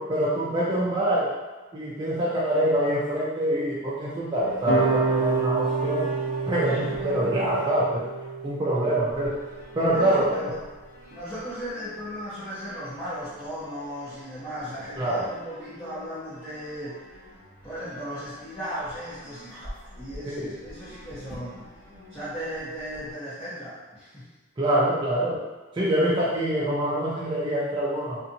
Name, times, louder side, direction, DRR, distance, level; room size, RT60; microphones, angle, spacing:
voice 1, 0.0-1.3 1.7-6.1 6.5-8.0 8.4-9.4 9.8-10.5 15.0-15.3 20.3-20.6 24.6-25.5 25.7-28.2, right 1 dB, 20° right, -7 dB, 0.3 m, -25 dB
sound 1, 4.4-7.6 9.1-23.1, equal, 45° left, 1.2 m, -45 dB
sound 2, 4.6-9.8, right 4 dB, 60° left, 0.4 m, -29 dB
voice 2, 6.6-7.1 8.8-9.0 9.9-10.5 11.1-17.0 17.6-21.7 22.1-24.3, equal, 10° left, -14 dB, 0.7 m, -36 dB
2.6 x 2.4 x 2.6 m, 1.3 s
head